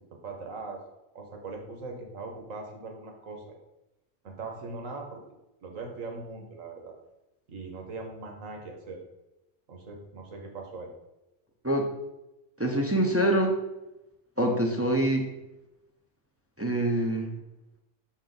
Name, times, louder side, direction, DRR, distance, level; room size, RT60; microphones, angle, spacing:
voice 1, 0.2-0.8 1.1-3.6 4.2-5.2 5.6-6.9 7.5-9.0 9.7-10.9, right 3 dB, 85° right, 2 dB, 1.5 m, -40 dB
voice 2, 12.6-13.5 14.4-15.2 16.6-17.3, right 1 dB, 15° right, 1 dB, 0.5 m, -25 dB
6.3 x 4.4 x 3.9 m, 0.94 s
omnidirectional pair, 1.3 m